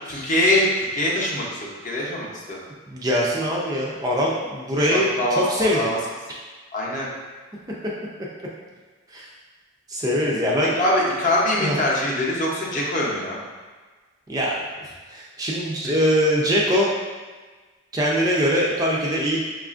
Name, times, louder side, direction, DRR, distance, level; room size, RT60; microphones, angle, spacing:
voice 1, 0.1-2.6 4.8-4.9 5.2-6.0 6.7-7.1 10.7-13.4 15.8-15.9, left 1 dB, 40° left, -4 dB, 0.6 m, -23 dB
voice 2, 2.9-5.9 9.1-9.3 9.9-10.8 11.6-11.8 14.3-16.9 17.9-19.4, equal, 20° right, -4 dB, 0.3 m, -22 dB
4.9 x 2.4 x 2.4 m, 1.3 s
head